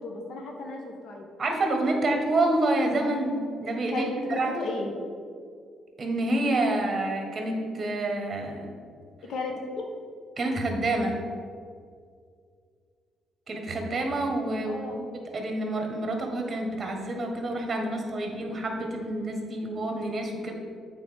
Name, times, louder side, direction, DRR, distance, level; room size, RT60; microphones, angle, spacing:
voice 1, 0.0-1.3 3.9-4.9 9.3-9.9 14.6-15.0, left 2 dB, 70° left, 1 dB, 1.3 m, -34 dB
voice 2, 1.4-4.5 6.0-8.7 10.4-11.2 13.5-20.5, right 2 dB, 35° right, 2 dB, 1.4 m, -28 dB
8.3 x 4.0 x 5.1 m, 2.2 s
cardioid pair, 90°, 0 cm